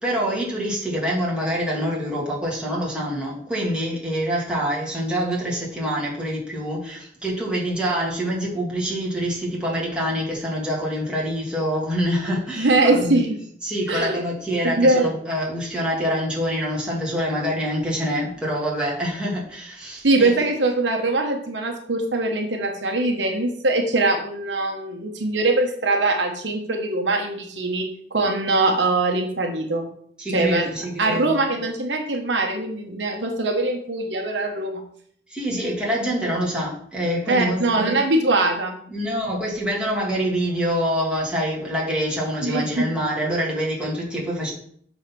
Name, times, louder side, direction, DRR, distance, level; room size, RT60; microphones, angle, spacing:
voice 1, 0.0-13.2 13.6-20.5 30.2-31.4 35.3-37.9 38.9-44.5, equal, 5° right, -5 dB, 2.3 m, -26 dB
voice 2, 12.6-13.3 13.9-14.2 14.6-15.2 20.0-27.8 28.1-29.9 30.3-30.7 31.0-34.8 37.3-38.8 42.4-42.9, right 2 dB, 70° right, 3 dB, 1.1 m, -22 dB
7.1 x 4.0 x 5.9 m, 0.63 s
head